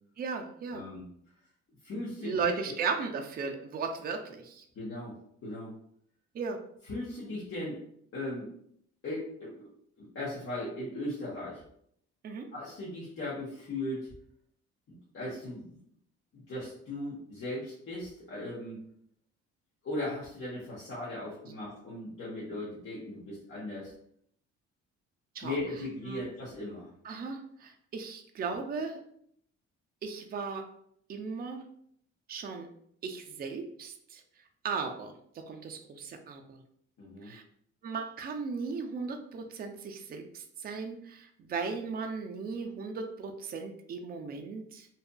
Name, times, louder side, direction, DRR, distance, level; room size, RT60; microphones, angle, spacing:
voice 1, 0.2-0.8 2.2-4.6 6.3-6.6 12.2-12.5 25.3-25.6 26.1-26.2 27.0-29.0 30.0-30.7 31.1-31.6 32.3-32.7 33.0-34.2 34.6-36.6 37.2-37.4 37.8-44.9, right 5 dB, 30° right, 4 dB, 0.4 m, -36 dB
voice 2, 0.7-1.1 1.8-2.7 4.7-5.1 5.4-5.7 6.8-7.8 8.1-8.5 9.0-9.7 10.0-11.6 12.5-14.1 14.9-15.8 16.3-18.8 19.8-23.9 25.4-26.9 37.0-37.3, left 1 dB, 45° left, -7 dB, 0.9 m, -38 dB
2.7 x 2.4 x 2.2 m, 0.69 s
cardioid pair, 90°, 30 cm